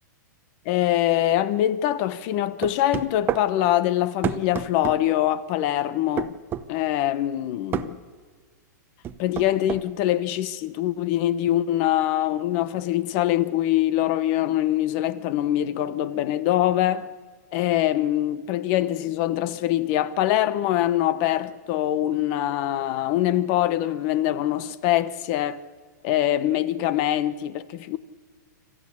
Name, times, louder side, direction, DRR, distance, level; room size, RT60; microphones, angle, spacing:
voice 1, 0.7-6.4 6.7-8.0 9.2-17.1 17.5-25.6 26.0-28.0, left 13 dB, 40° left, 1.0 m, -23 dB
sound 1, 2.6-3.5 4.2-5.0 6.2-6.7 7.7-7.9 9.0-9.8, right 10 dB, 20° right, 0.8 m, -28 dB
26.0 x 14.5 x 8.6 m
hypercardioid pair, 145°, 10 cm